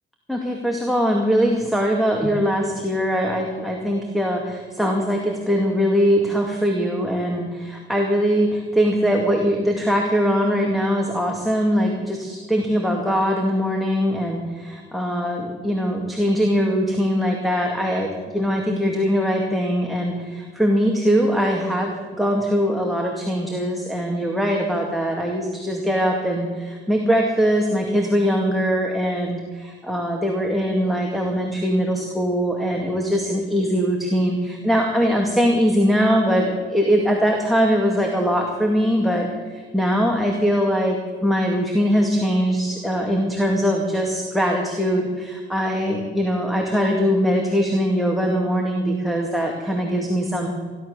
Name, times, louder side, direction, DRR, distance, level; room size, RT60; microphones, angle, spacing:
voice 1, 0.3-21.9 22.2-50.5, equal, ahead, 0 dB, 2.2 m, -21 dB
16.5 x 11.5 x 6.8 m, 1.5 s
cardioid pair, 90°, 20 cm